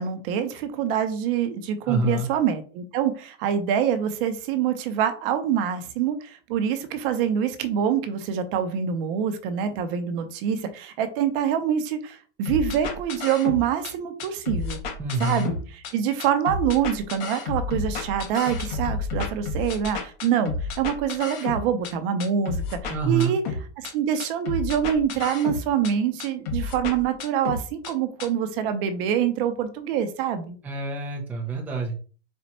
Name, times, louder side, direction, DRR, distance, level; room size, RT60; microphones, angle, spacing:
voice 1, 0.0-14.8 15.2-15.6 15.9-23.4 23.8-30.6, right 8 dB, 45° right, 8 dB, 0.8 m, -25 dB
voice 2, 1.8-2.3 15.0-15.5 22.9-23.3 30.6-32.0, right 3 dB, 5° right, -1 dB, 0.5 m, -26 dB
sound 1, 12.5-13.9 14.2-15.9 16.2-21.9 22.2-23.9 24.2-25.9 26.2-27.9 28.2-28.3, left 4 dB, 40° left, 1.2 m, -31 dB
4.4 x 2.4 x 4.1 m, 0.39 s
supercardioid pair, 140°, 38 cm